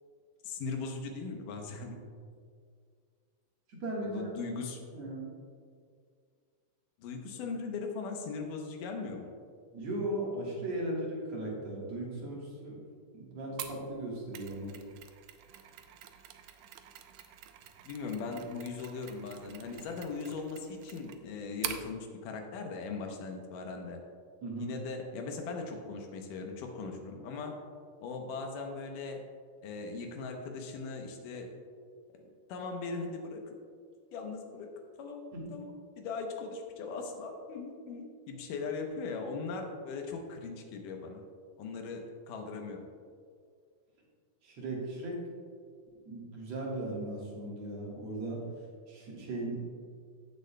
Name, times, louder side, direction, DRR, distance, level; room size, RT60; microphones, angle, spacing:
voice 1, 0.4-2.0 4.0-4.8 7.0-9.3 17.9-24.0 24.6-27.6 28.0-29.2 29.6-31.5 32.5-33.5 34.1-34.7 35.0-35.2 35.5-41.2 41.6-42.9, left 4 dB, 80° left, 3 dB, 2.5 m, -39 dB
voice 2, 3.7-4.3 4.9-5.3 9.7-12.8 13.1-14.7 24.4-24.7 35.3-35.6 44.4-45.3 46.1-48.4 48.9-49.6, right 1 dB, 60° right, -4 dB, 2.4 m, -37 dB
Mechanisms, 13.6-21.9, right 10 dB, 90° right, 1.6 m, -45 dB
15.5 x 6.5 x 2.2 m, 2.1 s
omnidirectional pair, 3.7 m